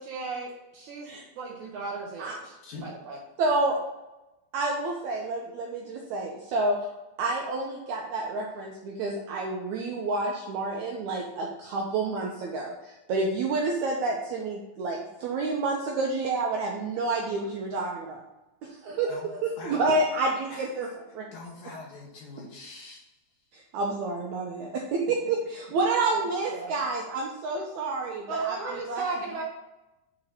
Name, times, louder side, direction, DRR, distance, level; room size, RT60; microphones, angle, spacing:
voice 1, 0.0-3.2 26.5-26.8 28.3-29.4, right 4 dB, 70° right, -1 dB, 1.8 m, -35 dB
voice 2, 3.4-3.8 4.5-6.8 7.2-18.2 18.6-21.3 23.5-29.0, right 3 dB, 90° right, 0 dB, 1.6 m, -29 dB
voice 3, 21.3-23.0, left 3 dB, 65° left, -3 dB, 2.3 m, -43 dB
7.5 x 3.8 x 4.8 m, 1.0 s
omnidirectional pair, 4.2 m